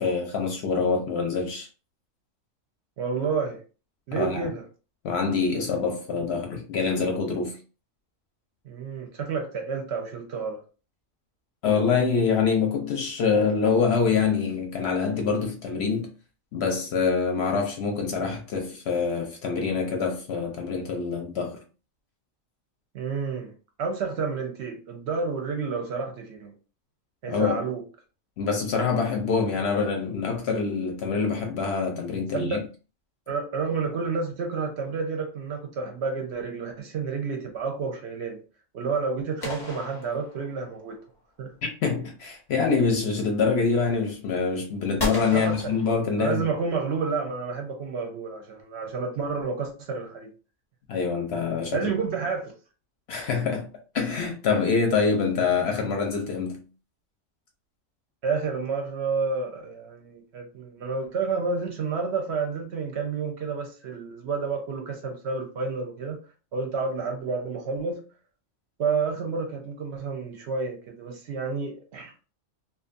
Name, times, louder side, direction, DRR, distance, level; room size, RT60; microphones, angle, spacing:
voice 1, 0.0-1.7 4.1-4.5 5.0-7.6 11.6-16.1 16.5-21.6 27.3-27.6 28.4-32.6 41.6-46.4 50.9-51.9 53.1-56.6, left 5 dB, 65° left, 0.7 m, -25 dB
voice 2, 3.0-3.6 4.1-4.6 8.7-10.6 22.9-23.5 23.8-26.5 27.2-27.8 32.3-32.6 33.3-38.4 38.7-41.0 41.4-41.5 45.3-45.6 46.2-50.3 51.7-52.5 58.2-66.2 66.5-68.0 68.8-72.1, right 5 dB, 65° right, 0.8 m, -30 dB
sound 1, 39.4-40.9 45.0-46.6, left 1 dB, 25° left, 0.7 m, -34 dB
2.5 x 2.3 x 2.5 m
omnidirectional pair, 1.4 m